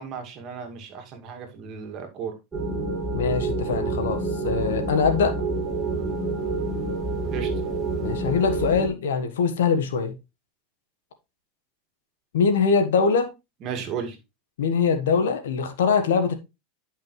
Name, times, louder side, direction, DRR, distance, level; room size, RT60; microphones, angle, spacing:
voice 1, 0.0-2.3 7.3-7.5 13.6-14.2, right 7 dB, 45° right, 2.2 m, -34 dB
sound 1, 2.5-8.9, right 3 dB, 20° right, 3.0 m, -28 dB
voice 2, 3.1-5.3 8.0-10.2 12.3-13.3 14.6-16.3, left 5 dB, 90° left, 1.4 m, -23 dB
10.5 x 5.5 x 3.2 m
supercardioid pair, 120°, 0 cm